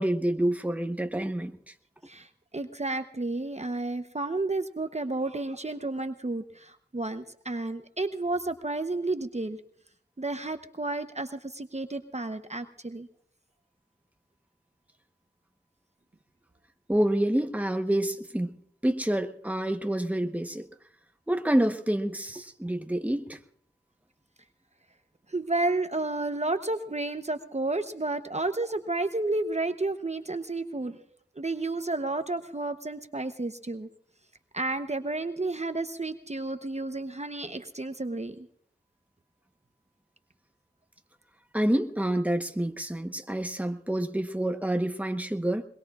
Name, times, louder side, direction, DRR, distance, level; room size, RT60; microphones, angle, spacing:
voice 1, 0.0-1.7 16.9-18.5 18.8-20.7 21.3-23.4 41.5-45.7, right 1 dB, 10° right, 7 dB, 1.1 m, -28 dB
voice 2, 2.5-9.6 10.2-13.1 25.3-31.0 31.4-33.9 34.5-38.5, right 2 dB, 40° right, 8 dB, 0.9 m, -31 dB
22.5 x 21.5 x 2.4 m, 0.68 s
wide cardioid pair, 50°, 18 cm